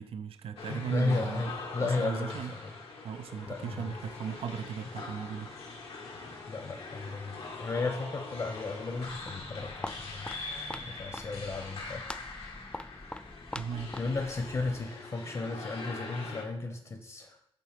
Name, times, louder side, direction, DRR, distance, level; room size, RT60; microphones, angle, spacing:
voice 1, 0.0-1.5 1.8-2.5 3.0-5.6 13.5-13.9, right 7 dB, 80° right, 10 dB, 0.4 m, -37 dB
sound 1, 0.6-16.4, left 3 dB, 85° left, 1.4 m, -42 dB
voice 2, 0.9-2.7 3.5-4.0 6.5-10.3 10.9-12.0 12.7-12.8 14.0-17.4, left 3 dB, 45° left, 4 dB, 0.9 m, -34 dB
Walk footsteps, 8.9-15.0, left 2 dB, 10° left, 0.3 m, -44 dB
8.4 x 3.8 x 5.1 m, 0.71 s
cardioid pair, 75°, 10 cm